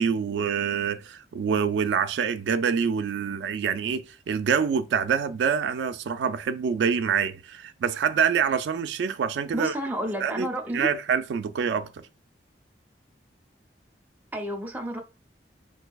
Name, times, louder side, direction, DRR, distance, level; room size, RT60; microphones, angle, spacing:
voice 1, 0.0-9.7 10.2-10.5 10.7-11.9, right 7 dB, 75° right, 0.3 m, -26 dB
voice 2, 9.5-10.9 14.3-15.0, right 1 dB, 10° right, 0.5 m, -30 dB
3.9 x 2.6 x 2.2 m
head